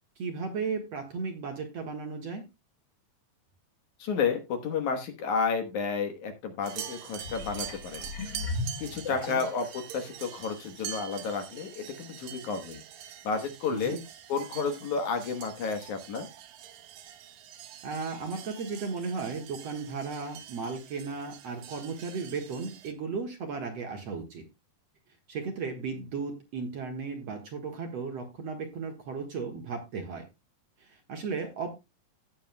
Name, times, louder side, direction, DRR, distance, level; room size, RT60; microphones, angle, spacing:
voice 1, 0.2-2.4 9.3-9.4 13.7-14.0 17.8-24.4 25.3-30.3 30.8-31.7, right 5 dB, 55° right, 4 dB, 2.1 m, -35 dB
voice 2, 4.0-8.0 8.8-12.8 13.2-14.0 14.3-16.3, left 5 dB, 65° left, 7 dB, 2.4 m, -31 dB
sound 1, 6.6-22.9, right 10 dB, 75° right, 2.7 m, -45 dB
sound 2, 7.2-9.8 10.4-10.5, left 3 dB, 85° left, 0.9 m, -37 dB
16.5 x 7.5 x 2.2 m, 0.24 s
omnidirectional pair, 4.2 m